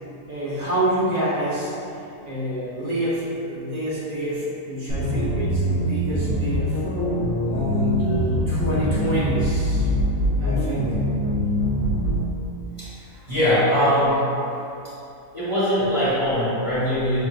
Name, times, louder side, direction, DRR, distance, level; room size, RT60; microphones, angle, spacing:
voice 1, 0.3-1.7 2.3-6.8 7.4-9.9 10.4-11.0, equal, 65° right, -9 dB, 1.2 m, -27 dB
sound 1, 4.9-12.3, equal, 90° right, 1.6 m, -23 dB
voice 2, 12.8-14.2 14.5-14.6 15.3-17.2, equal, 20° left, -12 dB, 1.4 m, -22 dB
6.7 x 2.9 x 2.4 m, 2.8 s
omnidirectional pair, 1.6 m